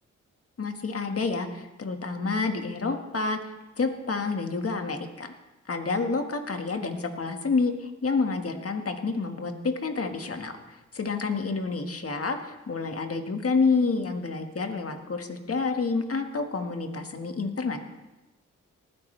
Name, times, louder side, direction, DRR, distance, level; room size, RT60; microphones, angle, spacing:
voice 1, 0.6-5.3 5.7-17.8, left 4 dB, 50° left, 6 dB, 1.7 m, -29 dB
19.5 x 9.6 x 3.3 m, 1.1 s
supercardioid pair, 45°, 31 cm